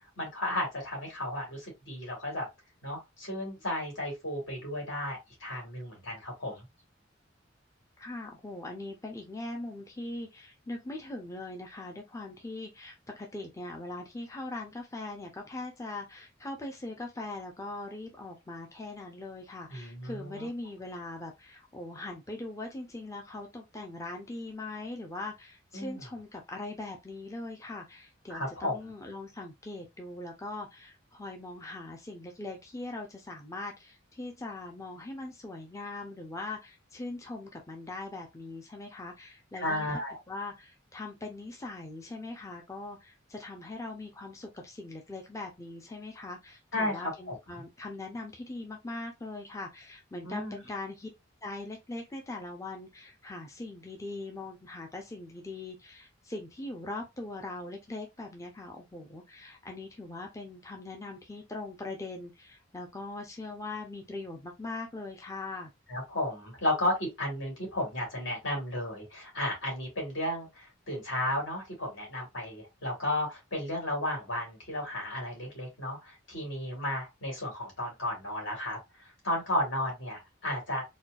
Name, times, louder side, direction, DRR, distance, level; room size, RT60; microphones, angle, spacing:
voice 1, 0.2-2.5 2.8-6.6 19.7-20.5 25.7-26.1 28.3-28.8 39.6-40.2 46.7-47.4 50.2-50.5 65.9-80.8, left 1 dB, 70° left, 2.0 m, -33 dB
voice 2, 8.0-40.0 40.3-51.1 51.4-65.7, left 2 dB, 15° left, 0.5 m, -41 dB
4.2 x 2.2 x 2.3 m
head